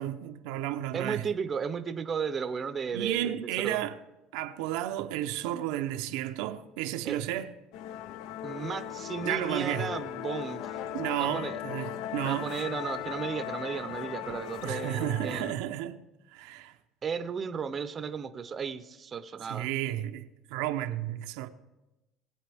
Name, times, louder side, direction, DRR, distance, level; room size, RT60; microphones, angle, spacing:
voice 1, 0.0-1.3 2.9-4.0 4.3-7.5 9.2-9.9 10.9-12.5 14.6-16.0 16.3-16.7 19.5-21.5, right 13 dB, 85° right, 0.7 m, -32 dB
voice 2, 0.9-3.3 3.6-3.8 7.0-7.2 8.4-10.7 11.2-11.6 12.2-15.5 17.0-19.7, right 6 dB, 25° right, 0.6 m, -34 dB
Musical instrument, 7.7-15.5, left 11 dB, 65° left, 0.5 m, -38 dB
20.5 x 8.6 x 3.5 m
cardioid pair, 155°, 0 cm